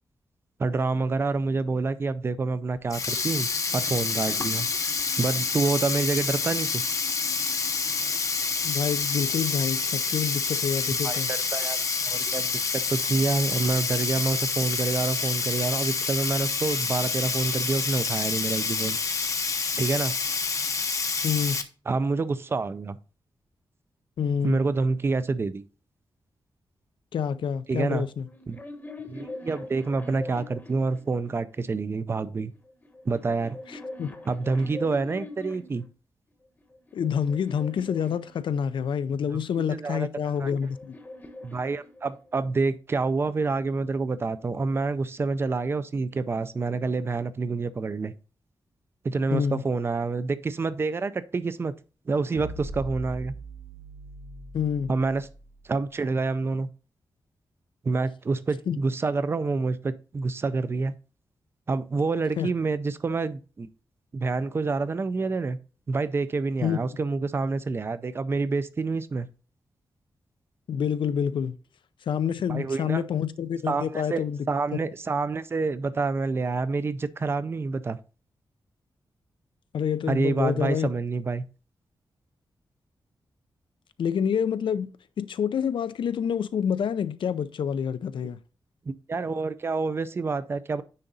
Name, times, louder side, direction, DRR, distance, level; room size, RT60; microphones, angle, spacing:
voice 1, 0.6-4.7 5.2-6.8 11.0-19.0 19.8-20.1 21.9-23.0 24.4-25.6 27.7-28.1 28.5-28.6 29.1-32.5 33.0-33.6 34.3-35.8 39.3-39.4 39.7-40.1 40.4-40.5 41.4-48.1 49.0-51.7 52.1-53.3 54.9-55.3 55.6-56.7 57.8-61.0 61.7-63.7 64.1-65.6 65.9-69.3 72.5-73.1 73.7-78.0 80.1-81.4 88.9-90.8, right 3 dB, 30° right, 0.4 m, -27 dB
Sink (filling or washing), 2.8-21.6, left 4 dB, 40° left, 0.7 m, -28 dB
voice 2, 8.6-11.3 21.2-21.6 24.2-24.6 27.1-28.3 33.7-34.2 36.9-40.9 49.3-49.6 54.5-54.9 58.7-58.8 62.4-62.5 66.6-66.8 70.7-71.6 72.1-74.4 79.7-80.9 84.0-84.9 85.2-88.4, left 7 dB, 75° left, 0.5 m, -27 dB
sound 1, 28.2-31.6 32.5-35.9 36.6-39.0 40.0-42.4, left 2 dB, 25° left, 1.0 m, -43 dB
sound 2, 52.3-55.7, right 2 dB, 80° right, 1.4 m, -40 dB
9.7 x 3.9 x 3.9 m
wide cardioid pair, 170°, 8 cm